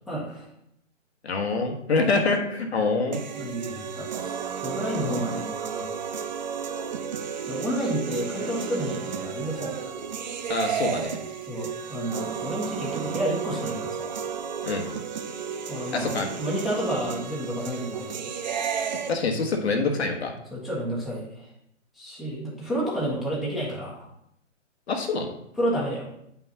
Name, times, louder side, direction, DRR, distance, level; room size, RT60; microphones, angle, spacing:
voice 1, 0.1-0.5 3.3-4.3 4.6-5.9 7.5-9.8 11.5-14.2 15.7-18.3 20.5-21.5 22.0-24.1 25.6-26.1, right 1 dB, ahead, -8 dB, 1.3 m, -30 dB
voice 2, 1.2-3.2 10.5-11.2 14.6-14.9 15.9-16.3 19.1-20.3 24.9-25.3, left 3 dB, 55° left, 3 dB, 1.3 m, -25 dB
sound 1, 3.1-19.1, right 7 dB, 35° right, 0.6 m, -32 dB
8.9 x 5.8 x 2.8 m, 0.76 s
figure-of-eight pair, 140°, 38 cm